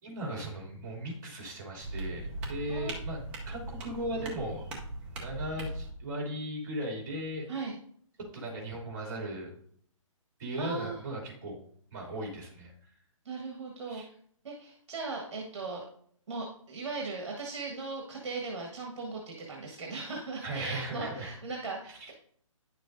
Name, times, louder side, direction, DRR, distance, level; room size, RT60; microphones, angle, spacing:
voice 1, 0.0-3.2 3.4-4.6 5.1-7.5 8.3-9.5 10.4-11.6 11.9-12.9 13.9-14.1 20.4-21.3 21.9-22.1, right 1 dB, 35° right, -1 dB, 2.9 m, -37 dB
sound 1, 1.8-5.9, right 2 dB, 5° right, 0.5 m, -39 dB
voice 2, 10.6-11.0 13.2-14.0 14.4-15.8 16.3-22.1, right 3 dB, 55° right, 0 dB, 1.6 m, -38 dB
10.0 x 6.5 x 2.6 m, 0.62 s
hypercardioid pair, 170°, 17 cm